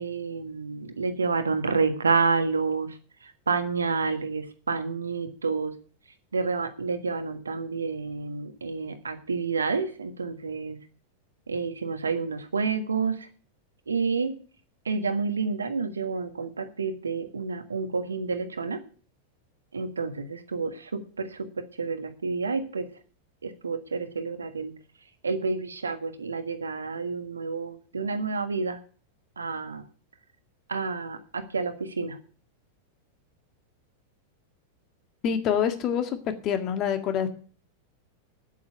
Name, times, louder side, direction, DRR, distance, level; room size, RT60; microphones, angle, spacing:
voice 1, 0.0-2.9 3.5-5.7 6.3-10.8 11.5-13.1 13.9-14.3 14.9-18.8 19.7-21.3 21.8-22.8 23.4-24.7 25.2-28.8 29.4-29.8 30.7-32.1, right 4 dB, 75° right, 8 dB, 1.5 m, -29 dB
voice 2, 35.2-36.2 36.4-37.3, left 8 dB, 35° left, 8 dB, 1.8 m, -26 dB
9.3 x 8.6 x 9.0 m, 0.42 s
figure-of-eight pair, 90°, 0 cm